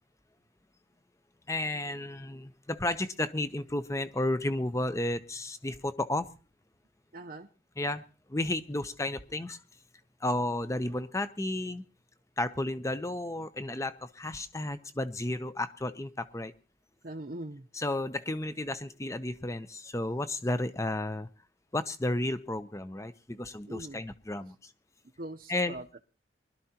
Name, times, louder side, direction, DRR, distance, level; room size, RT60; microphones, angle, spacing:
voice 1, 1.5-6.3 7.8-8.0 8.3-9.6 10.2-11.8 12.4-16.5 17.7-21.3 21.7-24.7 25.5-26.0, left 1 dB, 15° left, 0.7 m, -32 dB
voice 2, 7.1-7.5 17.0-17.7 23.7-24.0 25.2-26.0, right 1 dB, 45° right, 0.7 m, -41 dB
23.0 x 12.5 x 2.9 m
head